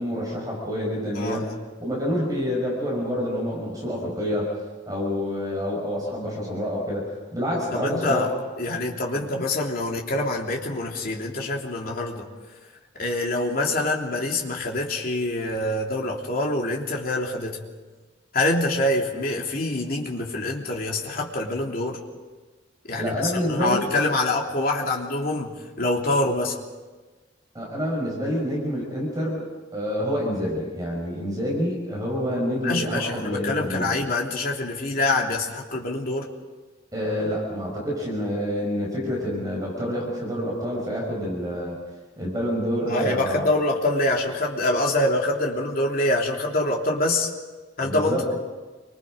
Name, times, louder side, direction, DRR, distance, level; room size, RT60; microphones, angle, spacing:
voice 1, 0.0-1.5 1.8-4.5 4.9-8.3 9.1-9.2 23.0-23.9 27.5-29.4 29.7-34.0 36.9-41.8 42.2-43.5 47.8-48.4, equal, 20° right, -2 dB, 6.0 m, -27 dB
voice 2, 1.1-1.5 7.7-8.3 8.6-12.3 13.0-17.6 18.3-22.0 22.9-23.1 23.5-26.6 32.6-36.3 42.9-47.3 47.8-48.3, left 2 dB, 50° left, -1 dB, 3.1 m, -25 dB
28.5 x 25.0 x 5.2 m, 1.3 s
head